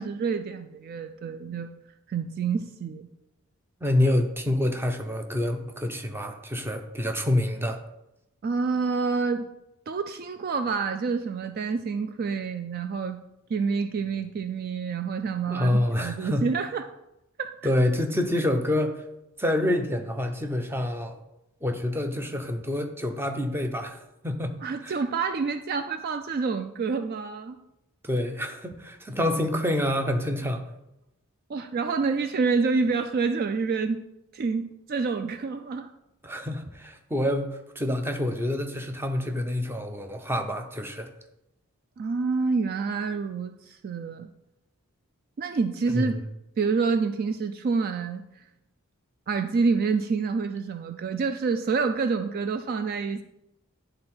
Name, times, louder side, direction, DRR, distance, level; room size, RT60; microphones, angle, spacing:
voice 1, 0.0-1.7 2.1-3.1 8.4-9.5 9.9-13.2 13.5-16.8 17.4-17.5 24.6-27.6 31.5-34.0 34.3-35.9 42.0-44.3 45.4-46.1 46.6-48.4 49.3-53.2, right 4 dB, 45° right, 8 dB, 0.3 m, -27 dB
voice 2, 3.8-7.8 15.5-16.4 17.6-19.0 19.4-21.2 21.6-24.0 24.2-24.5 24.8-25.0 28.0-30.6 36.2-41.1 45.9-46.2, left 1 dB, 10° right, 5 dB, 0.6 m, -27 dB
10.5 x 3.8 x 4.3 m, 0.89 s
head